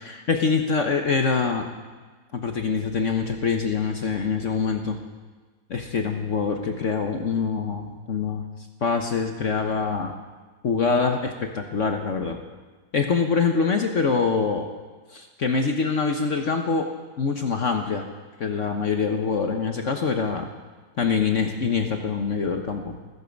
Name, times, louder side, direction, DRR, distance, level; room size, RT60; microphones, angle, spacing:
voice 1, 0.0-1.7 2.3-5.0 5.7-8.4 8.8-10.1 10.6-12.4 12.9-14.7 15.1-16.9 17.2-18.1 18.4-20.5 21.0-23.0, left 5 dB, 50° left, 4 dB, 1.1 m, -24 dB
15.0 x 14.5 x 5.2 m, 1.3 s
omnidirectional pair, 2.0 m